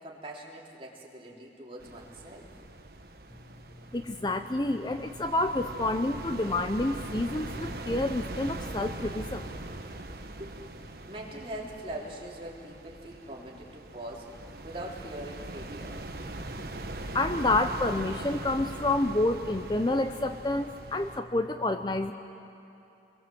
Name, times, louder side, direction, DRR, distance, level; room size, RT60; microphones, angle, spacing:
voice 1, 0.0-2.5 10.4-10.6 11.1-16.0, right 1 dB, 30° right, -3 dB, 3.6 m, -42 dB
sound 1, 1.8-21.2, right 2 dB, 60° right, 1.4 m, -41 dB
voice 2, 3.9-9.5 17.1-22.1, left 2 dB, 25° left, 8 dB, 0.6 m, -28 dB
28.5 x 22.0 x 7.9 m, 2.9 s
head